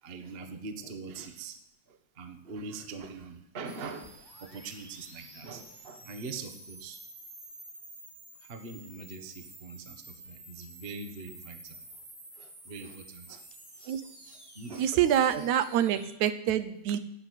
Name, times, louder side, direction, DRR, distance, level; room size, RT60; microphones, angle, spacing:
voice 1, 0.0-1.6 1.9-7.0 8.4-11.8 12.3-13.4 13.8-13.9 14.2-14.8 15.3-15.5, right 4 dB, 45° right, 6 dB, 0.8 m, -43 dB
sound 1, 3.6-16.1, right 1 dB, 10° right, 1.3 m, -50 dB
voice 2, 14.8-17.0, right 10 dB, 75° right, 11 dB, 2.1 m, -26 dB
13.0 x 8.2 x 9.2 m, 0.78 s
omnidirectional pair, 3.4 m